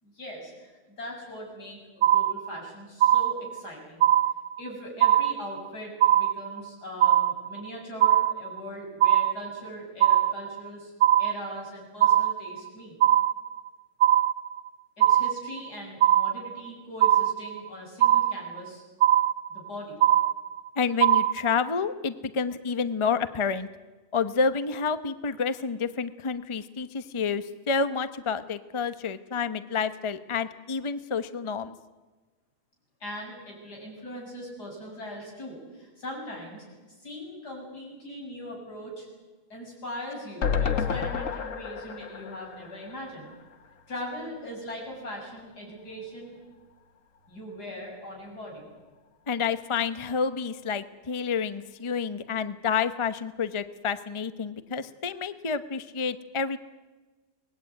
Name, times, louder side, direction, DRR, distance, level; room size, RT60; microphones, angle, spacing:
voice 1, 0.0-4.1 4.6-10.9 11.2-12.9 15.0-18.8 19.5-20.0 33.0-39.1 39.5-43.3 43.9-46.4 47.3-48.7, equal, 85° left, -1 dB, 8.4 m, -40 dB
sound 1, 2.0-2.7 3.0-3.7 4.0-4.7 5.0-5.7 6.0-6.7 7.0-7.7 8.0-8.7 9.0-9.7 10.0-10.7 11.0-11.7 12.0-12.7 13.0-13.7 14.0-14.7 15.0-15.7 16.0-16.7 17.0-17.7 18.0-18.7 19.0-19.7 20.0-20.7 21.0-21.7, right 11 dB, 70° right, 1.4 m, -21 dB
voice 2, 20.8-23.7 24.1-31.7 49.3-56.6, left 5 dB, 25° left, 12 dB, 0.8 m, -29 dB
sound 2, 40.4-43.7 44.0-44.1 44.3-44.4, left 6 dB, 55° left, 1.6 m, -30 dB
24.0 x 19.5 x 9.6 m, 1.3 s
omnidirectional pair, 1.7 m